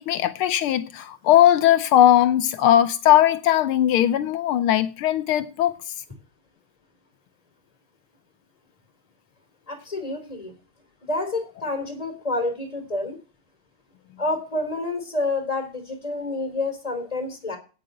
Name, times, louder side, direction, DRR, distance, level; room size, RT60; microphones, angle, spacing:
voice 1, 0.0-5.8, left 12 dB, 80° left, 1.6 m, -19 dB
voice 2, 9.7-10.5 11.0-13.2 14.2-17.6, left 2 dB, 15° left, 3.2 m, -28 dB
9.0 x 8.5 x 7.8 m
omnidirectional pair, 2.4 m